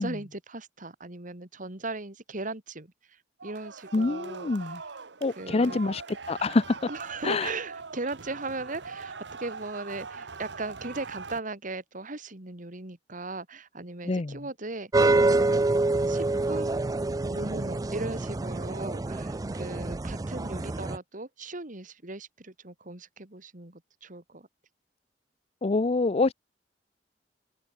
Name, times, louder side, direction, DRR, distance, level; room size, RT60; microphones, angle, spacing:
voice 1, 0.0-4.9 5.3-5.8 6.9-15.8 16.1-16.8 17.3-24.5, right 2 dB, 45° right, 2.6 m, -38 dB
sound 1, 3.4-11.4, right 4 dB, 70° right, 1.2 m, -42 dB
voice 2, 3.9-4.8 5.2-6.0 6.3-6.8 7.2-7.5 14.1-14.4 25.6-26.3, left 3 dB, 35° left, 0.5 m, -26 dB
sound 2, 14.9-21.0, right 2 dB, 20° right, 0.4 m, -26 dB
head